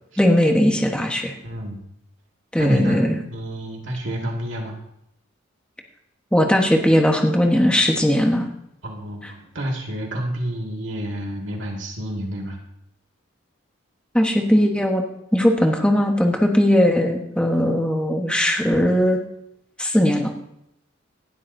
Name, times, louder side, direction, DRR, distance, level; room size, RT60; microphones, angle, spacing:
voice 1, 0.2-1.3 2.5-3.1 6.3-8.5 14.1-15.0 15.3-19.2 19.8-20.3, equal, 5° left, 2 dB, 1.2 m, -18 dB
voice 2, 1.4-1.8 2.6-3.0 3.3-4.8 8.8-12.6, right 1 dB, 70° right, -1 dB, 2.1 m, -28 dB
18.0 x 12.0 x 2.7 m, 0.80 s
head